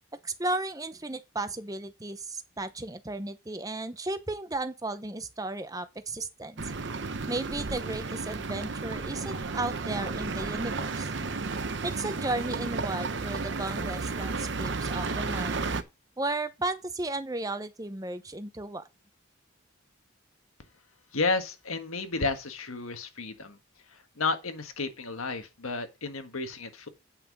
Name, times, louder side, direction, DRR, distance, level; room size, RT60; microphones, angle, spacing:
voice 1, 0.2-6.6 7.3-11.1 11.8-15.6 16.2-18.8, right 2 dB, 15° right, 0.7 m, -34 dB
sound 1, 6.6-15.8, right 3 dB, 55° right, 0.8 m, -33 dB
voice 2, 21.1-23.6 23.9-26.9, left 3 dB, 85° left, 1.5 m, -32 dB
9.0 x 5.9 x 5.3 m
head